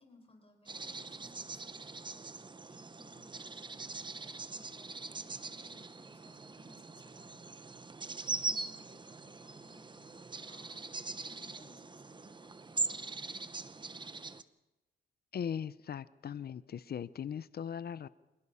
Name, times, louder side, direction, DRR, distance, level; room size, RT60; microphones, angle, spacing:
voice 1, 0.0-7.5 8.1-13.5, left 2 dB, 30° left, 4 dB, 5.2 m, -62 dB
sound 1, 0.7-14.4, right 3 dB, 25° right, 1.0 m, -42 dB
voice 2, 15.3-18.1, left 8 dB, 55° left, 16 dB, 0.7 m, -39 dB
27.0 x 19.5 x 5.7 m, 1.1 s
cardioid pair, 90°, 19 cm